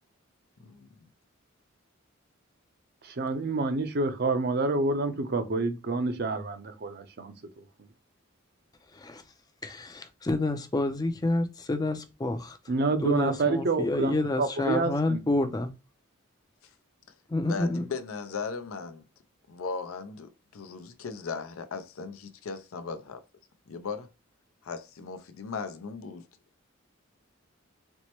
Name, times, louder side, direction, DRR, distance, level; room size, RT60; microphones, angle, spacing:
voice 1, 0.6-1.1 17.4-19.0 19.5-23.2 23.7-24.1 24.6-26.3, left 5 dB, 85° left, 0.5 m, -37 dB
voice 2, 3.0-7.6 12.7-15.2, right 3 dB, 50° right, 0.6 m, -28 dB
voice 3, 8.9-9.2 9.6-12.6 12.9-15.7 17.3-17.8, left 2 dB, 20° left, 0.4 m, -29 dB
4.3 x 2.1 x 2.9 m
head